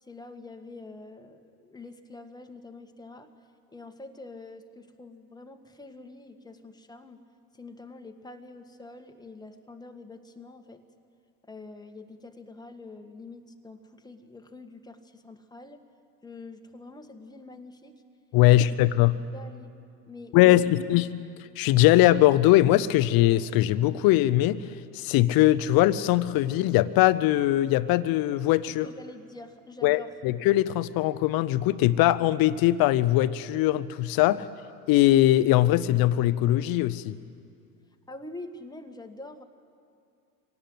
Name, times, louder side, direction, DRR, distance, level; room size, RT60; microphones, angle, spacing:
voice 1, 0.0-3.3 3.7-7.3 7.5-10.8 11.5-15.9 16.2-17.9 18.4-18.8 19.1-19.8 20.1-20.4 20.6-20.8 28.7-30.1 34.2-34.4 38.1-39.4, left 2 dB, 10° left, 5 dB, 1.7 m, -45 dB
voice 2, 18.3-19.2 20.3-21.1 21.6-24.6 24.9-28.9 29.8-34.5 34.9-37.2, left 15 dB, 50° left, 15 dB, 0.9 m, -21 dB
24.5 x 18.0 x 8.0 m, 2.4 s
hypercardioid pair, 80°, 47 cm